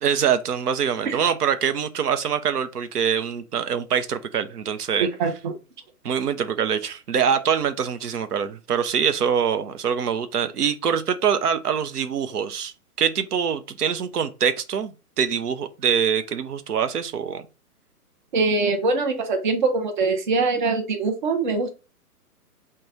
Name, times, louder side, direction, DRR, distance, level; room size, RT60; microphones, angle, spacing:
voice 1, 0.0-5.1 6.0-17.4, right 7 dB, 85° right, 0.6 m, -24 dB
voice 2, 5.0-5.5 18.3-21.7, right 3 dB, 35° right, 0.5 m, -23 dB
3.1 x 2.2 x 3.6 m
figure-of-eight pair, 130°, 46 cm